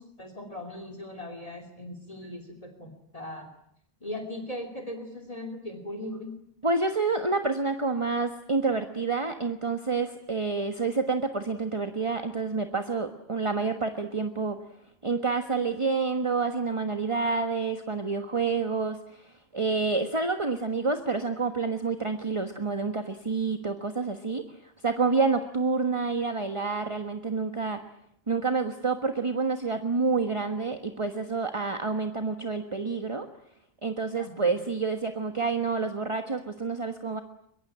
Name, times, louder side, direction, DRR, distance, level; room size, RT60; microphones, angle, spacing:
voice 1, 0.0-3.5 4.0-6.3 34.2-34.6, left 1 dB, 35° left, 7 dB, 2.9 m, -39 dB
voice 2, 6.6-14.6 15.0-19.2 19.5-24.4 24.8-27.8 28.3-33.3 33.8-37.2, right 4 dB, 30° right, 7 dB, 1.4 m, -28 dB
23.0 x 22.5 x 9.9 m, 0.71 s
omnidirectional pair, 1.1 m